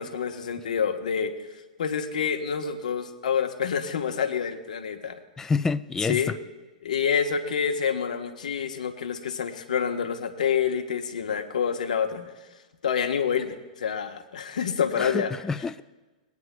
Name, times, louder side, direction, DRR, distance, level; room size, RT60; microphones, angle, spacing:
voice 1, 0.0-1.3 1.8-5.2 6.0-6.3 6.8-12.3 12.8-15.3, left 7 dB, 70° left, 7 dB, 1.0 m, -27 dB
voice 2, 5.4-6.4 15.0-15.8, left 4 dB, 10° left, 14 dB, 0.4 m, -28 dB
21.5 x 9.4 x 2.2 m, 1.2 s
hypercardioid pair, 105°, 4 cm